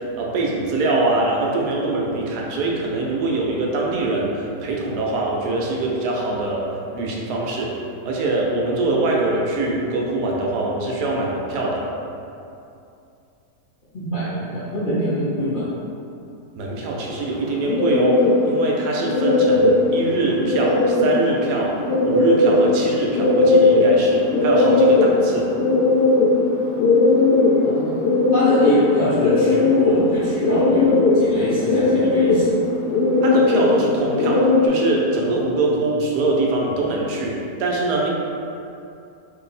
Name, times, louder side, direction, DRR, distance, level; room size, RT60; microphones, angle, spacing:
voice 1, 0.0-6.7 6.9-7.8 8.0-11.9 16.6-21.8 22.0-25.5 33.2-38.1, right 2 dB, 80° right, -2 dB, 1.1 m, -23 dB
voice 2, 13.9-15.7 27.6-27.9 28.3-32.6, equal, 45° left, -12 dB, 0.7 m, -24 dB
sound 1, 17.1-34.7, left 2 dB, 85° left, 1.2 m, -18 dB
2.7 x 2.7 x 3.9 m, 2.6 s
omnidirectional pair, 1.7 m